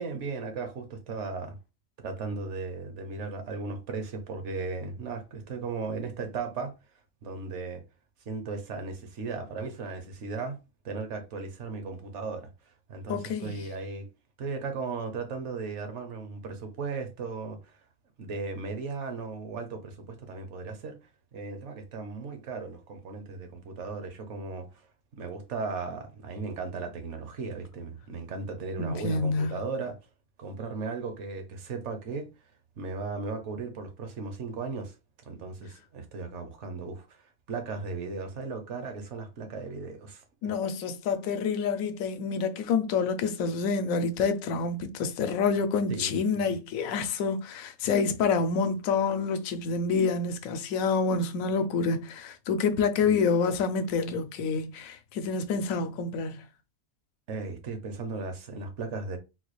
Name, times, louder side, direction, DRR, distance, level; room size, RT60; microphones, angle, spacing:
voice 1, 0.0-1.6 2.0-6.7 7.2-7.8 8.3-10.6 10.8-12.5 12.9-14.1 14.4-17.8 18.2-21.0 21.3-24.9 25.2-30.0 30.4-32.3 32.8-35.0 35.2-37.2 37.5-40.5 45.9-46.6 53.0-53.1 57.3-59.2, right 4 dB, 60° right, 1.0 m, -36 dB
voice 2, 13.1-13.6 28.8-29.5 40.4-56.4, left 5 dB, 80° left, 1.0 m, -28 dB
3.9 x 2.3 x 3.0 m
omnidirectional pair, 1.4 m